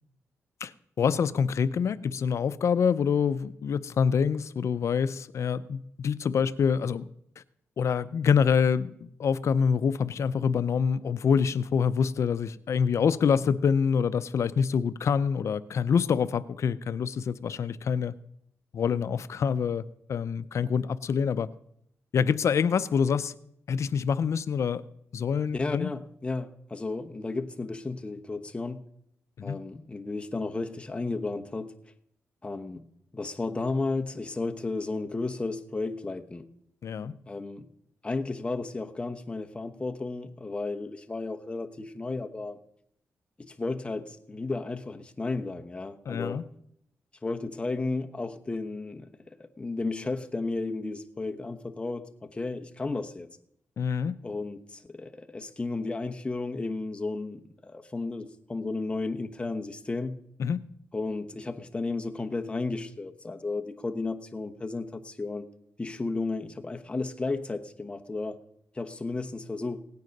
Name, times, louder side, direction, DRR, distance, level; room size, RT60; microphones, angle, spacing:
voice 1, 1.0-7.1 7.8-18.1 18.7-19.8 20.1-21.5 22.1-23.3 23.7-24.8 25.1-25.9 29.4-29.6 36.8-37.1 46.1-46.5 53.8-54.2 60.4-60.6, left 6 dB, 60° left, 0.6 m, -26 dB
voice 2, 25.5-28.8 29.4-31.8 32.4-32.8 33.1-36.5 37.3-37.7 38.0-42.6 43.4-46.5 47.2-53.3 54.2-60.2 60.9-65.4 65.8-68.4 68.7-69.8, left 3 dB, 20° left, 1.0 m, -33 dB
17.5 x 9.4 x 5.3 m
wide cardioid pair, 120°, 5 cm